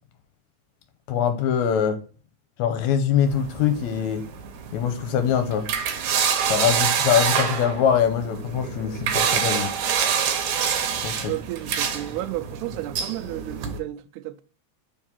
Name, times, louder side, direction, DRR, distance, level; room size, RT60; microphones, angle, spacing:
voice 1, 1.1-2.0 2.6-4.2 4.7-5.7 6.5-9.7 11.0-11.2, left 8 dB, 80° left, 1.9 m, -23 dB
sound 1, 3.3-13.8, right 7 dB, 70° right, 2.0 m, -26 dB
voice 2, 11.3-14.4, right 15 dB, 90° right, 2.1 m, -32 dB
4.6 x 3.7 x 5.5 m
omnidirectional pair, 3.4 m